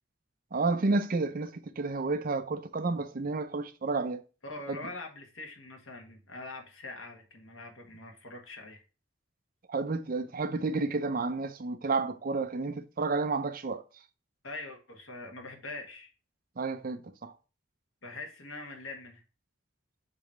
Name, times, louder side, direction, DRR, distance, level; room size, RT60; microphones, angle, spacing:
voice 1, 0.5-4.2 4.7-4.8 9.7-13.8 16.6-17.3, right 3 dB, 45° right, 0.5 m, -31 dB
voice 2, 4.4-8.8 14.4-16.1 18.0-19.2, left 2 dB, 90° left, 1.6 m, -43 dB
6.9 x 3.1 x 4.5 m
head